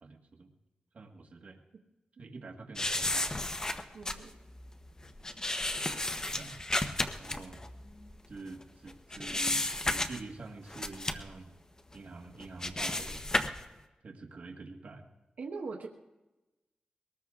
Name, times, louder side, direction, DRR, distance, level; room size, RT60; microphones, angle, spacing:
voice 1, 0.0-0.5 0.9-1.6 2.2-3.3 6.3-6.6 7.2-7.7 8.3-11.5 11.9-13.3 14.0-15.1, right 3 dB, 60° right, 2 dB, 1.5 m, -47 dB
sound 1, 2.8-8.6 8.9-10.4 10.7-11.3 11.9-12.0 12.4-13.6, left 2 dB, 25° left, 0.9 m, -33 dB
voice 2, 3.9-4.3 15.4-15.9, right 4 dB, 80° right, -1 dB, 1.2 m, -40 dB
23.0 x 19.0 x 2.5 m, 1.1 s
cardioid pair, 65°, 3 cm